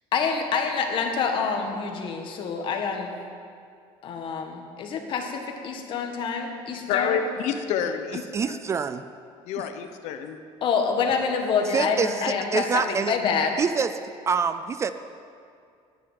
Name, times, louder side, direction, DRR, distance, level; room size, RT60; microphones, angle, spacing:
voice 1, 0.1-3.1 4.0-7.2 10.6-13.6, left 5 dB, 45° left, 4 dB, 1.7 m, -27 dB
voice 2, 6.9-8.6 9.4-10.4, left 7 dB, 75° left, 7 dB, 1.0 m, -28 dB
voice 3, 8.3-9.0 11.7-13.2 13.6-13.9 14.3-14.9, right 6 dB, 25° right, 11 dB, 0.4 m, -25 dB
10.5 x 10.0 x 9.5 m, 2.3 s
cardioid pair, 170°, 12 cm